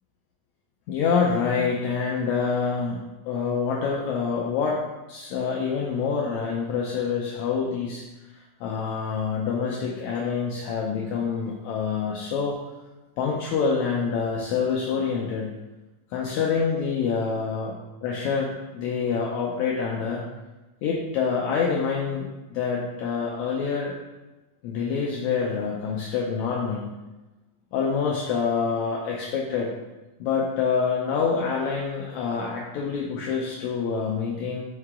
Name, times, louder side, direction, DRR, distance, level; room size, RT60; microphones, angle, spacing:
voice 1, 0.9-4.8 5.1-8.0 8.6-12.6 13.2-15.5 16.1-17.7 18.0-20.2 20.8-23.9 24.6-26.9 27.7-29.7 30.2-34.6, left 5 dB, 80° left, -3 dB, 1.7 m, -26 dB
5.7 x 4.7 x 3.6 m, 1.1 s
omnidirectional pair, 3.9 m